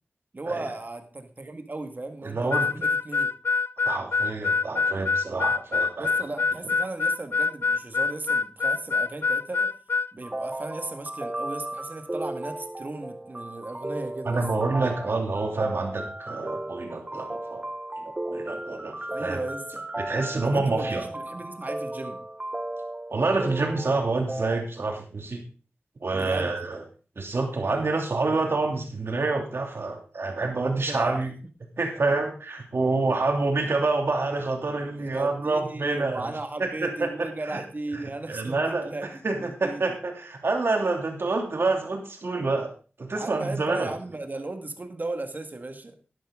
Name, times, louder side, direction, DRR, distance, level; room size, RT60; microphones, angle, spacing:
voice 1, 0.3-3.3 6.0-9.8 10.1-14.5 19.1-19.9 20.4-22.2 26.1-26.6 30.7-31.2 35.0-40.0 43.1-46.0, right 2 dB, 45° right, 6 dB, 1.9 m, -36 dB
voice 2, 2.2-2.7 3.8-6.1 14.2-17.7 18.0-19.4 20.0-21.0 23.1-25.4 26.0-26.8 27.2-31.3 31.8-36.3 36.6-37.6 37.9-38.9 39.2-42.7 43.0-43.9, right 3 dB, 70° right, 3 dB, 2.8 m, -27 dB
Harmonica, 2.5-10.1, left 4 dB, 65° left, 0.4 m, -25 dB
sound 1, 10.2-24.6, right 1 dB, 25° right, 1.0 m, -35 dB
11.5 x 11.5 x 3.7 m, 0.37 s
wide cardioid pair, 60°, 4 cm